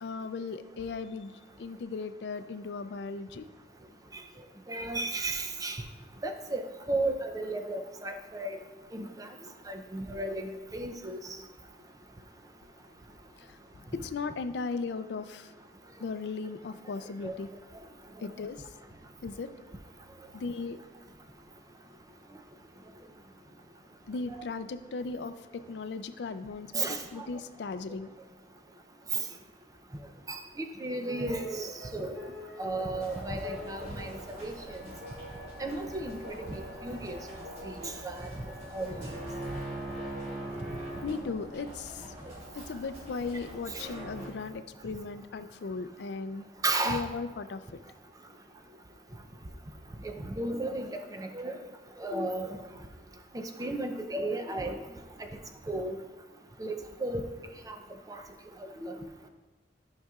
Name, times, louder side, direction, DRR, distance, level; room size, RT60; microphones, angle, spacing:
voice 1, 0.0-3.5 13.4-13.6 13.9-15.5 16.0-17.5 18.2-18.7 19.2-19.5 20.3-20.8 24.1-28.2 41.0-42.1 42.5-46.5 46.8-47.8, left 4 dB, 70° left, 11 dB, 0.4 m, -37 dB
voice 2, 4.7-5.8 6.2-6.6 6.9-8.6 8.9-9.3 9.7-11.2 17.2-17.4 26.7-27.3 30.3-32.2 32.6-34.8 35.6-37.2 37.6-38.3 38.7-39.1 42.3-42.4 46.6-47.1 50.0-51.6 52.0-52.6 53.3-54.8 55.7-55.9 56.6-57.3 57.7-57.8 58.1-58.2 58.8-59.0, right 2 dB, 20° right, 5 dB, 0.5 m, -34 dB
sound 1, 31.1-41.0, left 1 dB, 80° right, 1.2 m, -48 dB
sound 2, 33.0-44.3, right 1 dB, 40° right, 1.9 m, -43 dB
12.0 x 5.6 x 2.4 m, 1.2 s
head